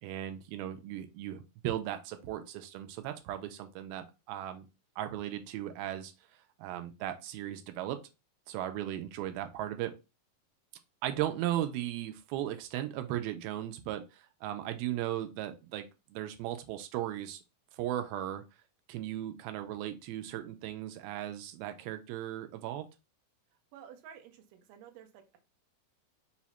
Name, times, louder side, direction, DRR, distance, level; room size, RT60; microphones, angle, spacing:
voice 1, 0.0-4.7 5.0-6.1 6.6-8.0 8.5-9.9 11.0-17.4 17.7-18.4 18.9-22.9, right 12 dB, 90° right, 7 dB, 2.5 m, -37 dB
voice 2, 23.7-25.4, right 8 dB, 75° right, 4 dB, 2.3 m, -52 dB
5.9 x 2.1 x 4.1 m, 0.27 s
omnidirectional pair, 4.2 m